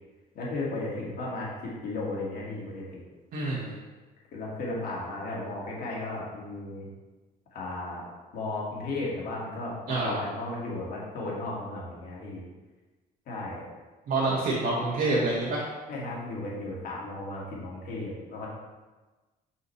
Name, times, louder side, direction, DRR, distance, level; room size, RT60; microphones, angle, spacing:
voice 1, 0.3-3.0 4.3-6.9 7.5-8.0 8.3-12.4 13.3-13.6 14.2-14.4 15.9-18.5, left 2 dB, 60° left, -4 dB, 2.1 m, -35 dB
voice 2, 3.3-3.7 9.9-10.2 14.1-15.7, right 2 dB, 60° right, -6 dB, 1.4 m, -27 dB
5.9 x 5.6 x 3.2 m, 1.2 s
cardioid pair, 110°, 17 cm